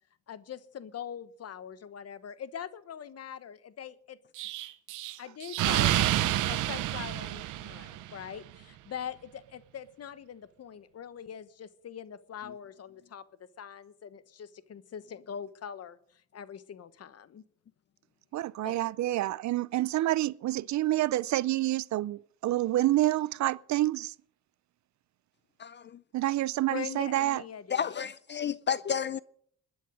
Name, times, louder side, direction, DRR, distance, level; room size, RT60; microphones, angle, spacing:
voice 1, 0.3-4.2 5.2-17.4 18.6-18.8 26.7-28.0, left 8 dB, 55° left, 1.2 m, -42 dB
Explosion, 4.4-8.2, right 14 dB, 90° right, 0.9 m, -29 dB
voice 2, 18.3-24.1 26.1-27.4, right 15 dB, 70° right, 0.6 m, -28 dB
voice 3, 25.6-26.0 27.7-29.2, left 7 dB, 35° left, 0.5 m, -31 dB
20.5 x 10.5 x 5.1 m
cardioid pair, 90°, 30 cm